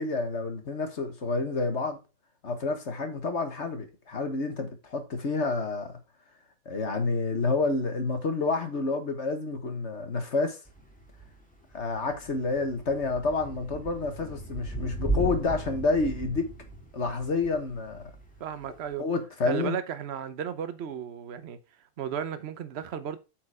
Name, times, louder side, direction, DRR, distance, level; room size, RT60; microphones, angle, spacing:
voice 1, 0.0-2.0 2.4-6.0 6.6-10.6 11.7-16.5 16.9-18.0 19.0-19.8, left 3 dB, 50° left, 1.7 m, -29 dB
Thunder / Rain, 10.7-18.9, right 1 dB, 5° left, 1.8 m, -37 dB
voice 2, 18.4-19.1 19.4-21.6 22.0-23.2, right 8 dB, 50° right, 1.0 m, -34 dB
8.2 x 4.7 x 4.9 m
omnidirectional pair, 1.6 m